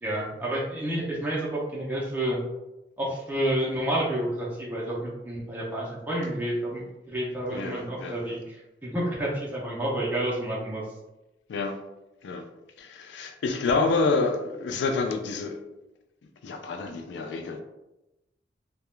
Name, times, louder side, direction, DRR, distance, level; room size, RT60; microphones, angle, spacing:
voice 1, 0.0-2.4 3.0-10.8, right 1 dB, 10° right, -6 dB, 0.4 m, -30 dB
voice 2, 7.5-8.4 11.5-11.8 12.2-12.5 12.8-15.6 16.4-17.6, left 3 dB, 75° left, 6 dB, 0.3 m, -28 dB
2.2 x 2.0 x 3.0 m, 0.98 s
head